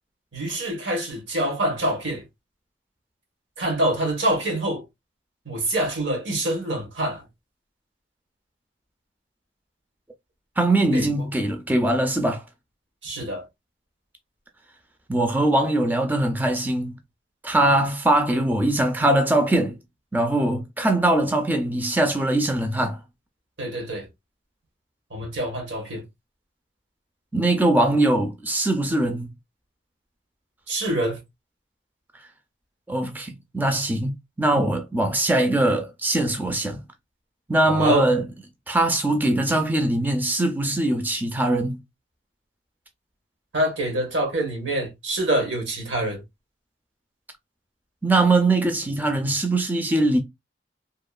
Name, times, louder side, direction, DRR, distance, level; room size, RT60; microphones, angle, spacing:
voice 1, 0.3-2.2 3.6-4.8 5.5-7.2 10.9-11.1 13.0-13.5 23.6-24.1 25.1-26.0 30.7-31.2 34.5-34.7 37.7-38.1 43.5-46.2, right 1 dB, 75° right, 1.1 m, -25 dB
voice 2, 10.6-12.4 15.1-17.0 17.4-19.8 20.1-23.0 27.3-29.3 32.9-36.8 37.5-38.3 38.7-41.8 48.0-50.2, right 1 dB, 10° right, 0.4 m, -22 dB
2.8 x 2.3 x 2.3 m
head